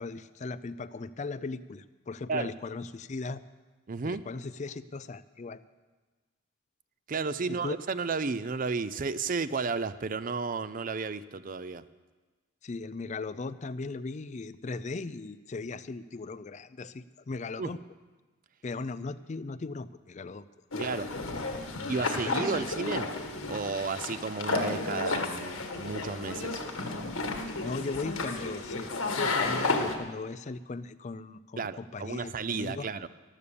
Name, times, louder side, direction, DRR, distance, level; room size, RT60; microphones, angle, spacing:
voice 1, 0.0-3.4 4.0-5.6 7.5-7.8 12.6-17.8 18.6-20.5 20.7-20.9 21.4-22.8 27.4-32.9, left 3 dB, 35° left, 15 dB, 0.4 m, -38 dB
voice 2, 3.9-4.2 7.1-11.8 17.6-17.7 20.8-21.1 21.9-23.1 23.5-26.6 31.6-33.1, right 4 dB, 40° right, 15 dB, 0.5 m, -33 dB
sound 1, 20.7-29.9, left 3 dB, 85° left, 1.7 m, -32 dB
14.0 x 12.5 x 6.9 m, 1.3 s
head